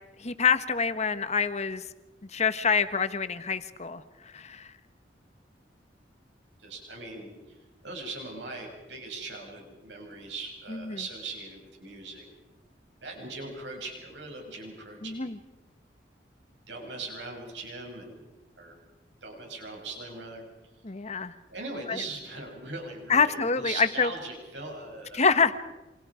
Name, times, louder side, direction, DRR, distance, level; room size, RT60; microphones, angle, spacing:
voice 1, 0.2-1.8 2.3-4.0 4.3-4.7 10.7-11.0 15.0-15.4 20.8-21.3 21.9-22.0 23.1-24.1 25.1-25.5, left 5 dB, 40° left, 11 dB, 1.3 m, -26 dB
voice 2, 6.6-7.6 7.8-12.3 13.0-15.3 16.7-18.2 18.6-18.8 19.2-20.4 21.5-25.3, right 3 dB, 85° right, 1 dB, 7.3 m, -40 dB
28.0 x 26.5 x 5.1 m, 1.1 s
head